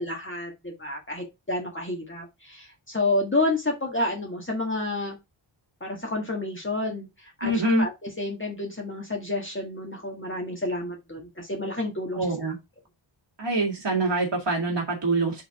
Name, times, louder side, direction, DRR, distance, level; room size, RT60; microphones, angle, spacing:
voice 1, 0.0-5.2 5.8-7.5 7.8-12.5, left 2 dB, 25° left, 0 dB, 1.7 m, -30 dB
voice 2, 7.4-7.9 12.1-12.6 13.4-15.4, right 2 dB, 60° right, -1 dB, 1.9 m, -25 dB
5.4 x 3.9 x 4.8 m, 0.23 s
wide cardioid pair, 130°, 48 cm